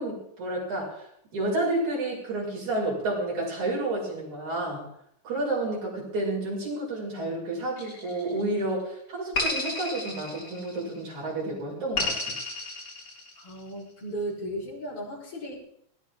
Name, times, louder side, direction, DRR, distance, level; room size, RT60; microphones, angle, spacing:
voice 1, 0.0-4.9 5.2-12.3, right 2 dB, 80° right, -4 dB, 8.3 m, -30 dB
sound 1, 7.8-8.6 9.3-11.0 12.0-13.6, left 2 dB, 25° left, 5.9 m, -32 dB
voice 2, 13.4-15.6, right 1 dB, 50° left, -4 dB, 5.5 m, -35 dB
20.0 x 17.5 x 3.8 m, 0.70 s
omnidirectional pair, 3.3 m